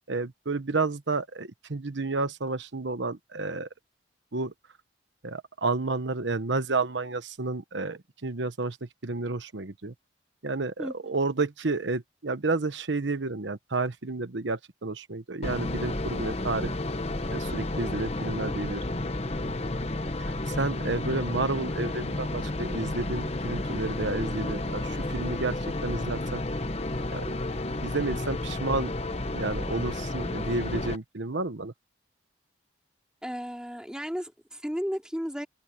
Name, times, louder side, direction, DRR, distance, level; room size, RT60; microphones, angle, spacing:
voice 1, 0.1-3.7 4.3-4.5 5.2-9.9 10.4-16.7 17.3-19.0 20.2-26.4 27.1-27.2 27.8-31.7, right 3 dB, 75° right, 1.1 m, -31 dB
voice 2, 10.8-11.2 33.2-35.5, equal, 5° right, 3.6 m, -34 dB
sound 1, 15.4-31.0, left 2 dB, 35° left, 1.0 m, -31 dB
head